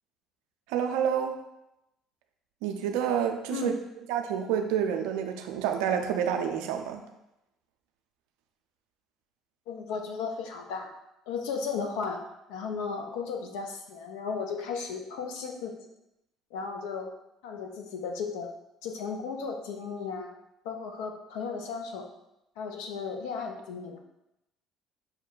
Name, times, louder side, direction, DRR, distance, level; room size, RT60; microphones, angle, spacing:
voice 1, 0.7-1.4 2.6-3.7 4.1-7.0, right 8 dB, 75° right, 5 dB, 0.4 m, -28 dB
voice 2, 9.7-10.9 11.3-12.2 12.5-15.7 16.5-17.1 17.4-18.5 18.8-20.3 20.6-22.0 22.6-24.0, left 5 dB, 75° left, 3 dB, 0.6 m, -35 dB
5.8 x 2.2 x 3.8 m, 0.88 s
hypercardioid pair, 55°, 0 cm